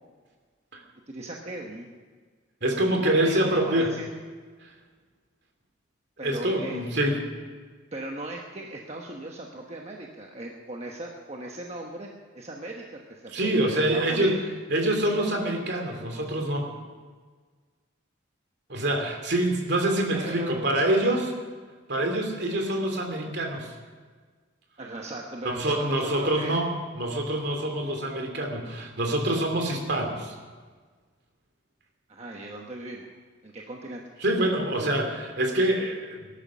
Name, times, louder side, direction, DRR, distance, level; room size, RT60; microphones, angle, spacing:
voice 1, 1.1-1.9 2.8-4.0 6.2-6.8 7.9-12.1 12.3-14.4 19.8-20.8 24.8-26.6 32.1-33.1 33.4-34.0 34.8-35.0, right 2 dB, 35° right, 0 dB, 1.2 m, -38 dB
voice 2, 2.6-3.9 4.6-4.7 6.2-7.2 13.3-14.3 14.7-16.7 18.7-21.3 21.9-23.7 25.4-30.3 34.2-36.2, right 1 dB, 55° right, 3 dB, 2.7 m, -26 dB
19.0 x 11.5 x 6.3 m, 1.5 s
head